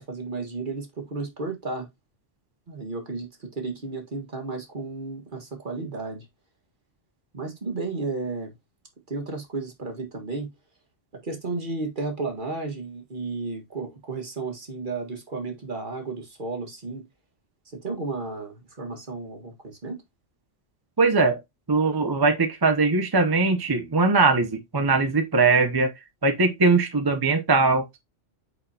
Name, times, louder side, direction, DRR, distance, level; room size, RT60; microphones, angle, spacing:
voice 1, 0.0-1.9 2.7-6.3 7.3-8.5 9.1-10.5 11.2-17.0 17.7-20.0, right 3 dB, 40° right, 1.8 m, -33 dB
voice 2, 21.0-21.4 21.7-25.9 26.2-28.0, right 3 dB, 25° right, 0.5 m, -21 dB
8.6 x 4.2 x 2.8 m
omnidirectional pair, 1.3 m